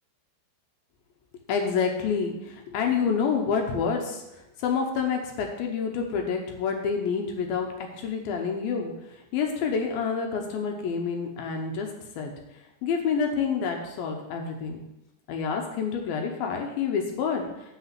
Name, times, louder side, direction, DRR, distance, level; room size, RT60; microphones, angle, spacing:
voice 1, 1.5-4.2 4.6-7.7 8.0-8.9 9.3-11.9 12.2-12.3 12.8-14.8 15.3-17.4, left 6 dB, 75° left, 2 dB, 2.3 m, -28 dB
9.9 x 3.9 x 7.4 m, 0.93 s
omnidirectional pair, 5.1 m